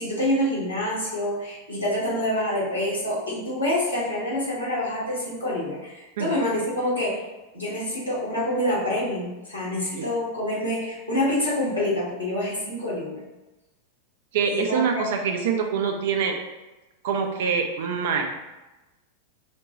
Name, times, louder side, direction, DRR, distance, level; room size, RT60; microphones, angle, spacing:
voice 1, 0.0-7.2 7.5-13.2 14.5-15.2, left 1 dB, 85° left, -7 dB, 1.5 m, -27 dB
voice 2, 14.3-16.4 17.0-18.4, right 6 dB, 55° right, 4 dB, 0.5 m, -25 dB
5.0 x 2.2 x 3.0 m, 1.1 s
figure-of-eight pair, 90°, 0 cm